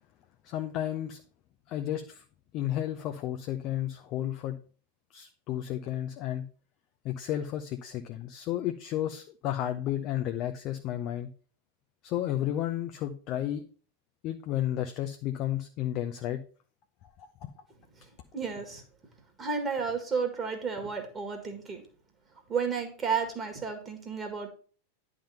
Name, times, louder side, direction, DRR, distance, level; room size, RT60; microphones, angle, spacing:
voice 1, 0.4-1.2 1.7-2.2 2.5-4.6 5.1-6.5 7.0-11.3 12.0-13.6 14.2-16.4 17.2-17.5, left 12 dB, 40° left, 7 dB, 0.6 m, -32 dB
voice 2, 18.3-18.8 19.4-21.8 22.5-24.5, right 5 dB, 20° right, 4 dB, 1.7 m, -32 dB
10.0 x 3.7 x 5.5 m, 0.40 s
figure-of-eight pair, 90°, 0 cm